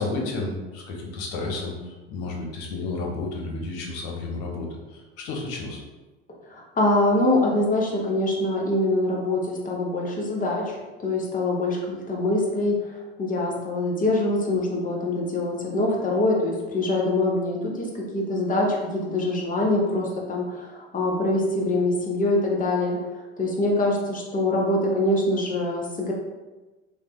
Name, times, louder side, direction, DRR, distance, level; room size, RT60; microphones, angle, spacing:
voice 1, 0.0-5.8, left 3 dB, 70° left, 0 dB, 0.8 m, -32 dB
voice 2, 6.5-23.0 23.4-26.1, left 2 dB, 25° left, -2 dB, 0.9 m, -24 dB
3.2 x 2.2 x 3.0 m, 1.2 s
hypercardioid pair, 75°, 34 cm